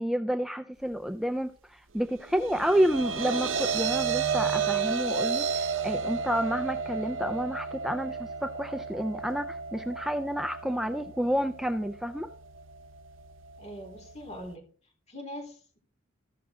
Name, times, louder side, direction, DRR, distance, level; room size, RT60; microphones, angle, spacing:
voice 1, 0.0-12.3, equal, ahead, 9 dB, 0.4 m, -30 dB
sound 1, 2.2-14.5, right 6 dB, 80° right, 0.7 m, -33 dB
voice 2, 13.6-14.6 15.1-15.8, equal, 35° left, 0 dB, 3.5 m, -42 dB
14.5 x 6.1 x 3.6 m, 0.41 s
head